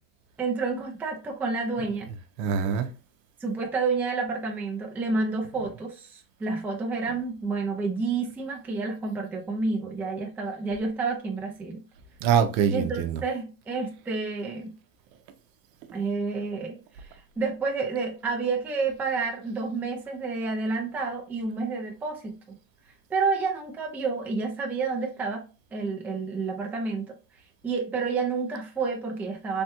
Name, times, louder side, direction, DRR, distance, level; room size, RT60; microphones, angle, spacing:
voice 1, 0.4-2.1 3.4-11.8 12.7-14.7 15.9-22.3 23.1-27.1 27.6-29.6, right 4 dB, 5° right, 0.3 m, -29 dB
voice 2, 2.1-2.9 5.6-5.7 7.1-7.2 12.2-13.2, right 8 dB, 75° right, 0.7 m, -25 dB
3.3 x 2.2 x 2.9 m
supercardioid pair, 130°, 43 cm